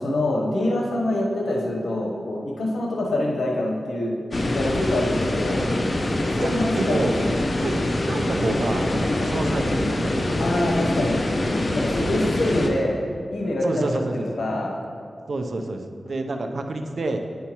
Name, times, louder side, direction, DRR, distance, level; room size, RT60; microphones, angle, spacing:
voice 1, 0.0-4.1 4.4-5.7 6.2-7.3 9.1-9.3 10.3-11.2 11.7-13.0 13.3-14.7, left 1 dB, 90° left, -2 dB, 0.9 m, -25 dB
sound 1, 4.3-12.7, left 1 dB, 55° left, 0.7 m, -24 dB
voice 2, 6.4-7.1 7.6-10.4 13.6-14.4 15.3-17.2, right 2 dB, 75° right, 5 dB, 0.6 m, -28 dB
9.2 x 5.7 x 2.9 m, 2.3 s
cardioid pair, 45°, 0 cm